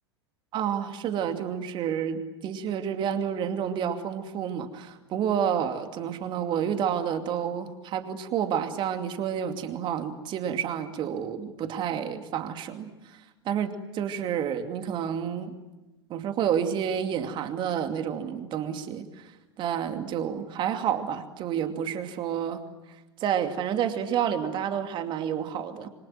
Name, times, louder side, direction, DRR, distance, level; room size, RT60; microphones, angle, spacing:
voice 1, 0.5-12.9 13.4-15.6 16.1-19.1 19.6-22.6 23.2-25.9, right 8 dB, 35° right, 7 dB, 2.6 m, -29 dB
27.5 x 25.0 x 7.8 m, 1.1 s
figure-of-eight pair, 90°, 14 cm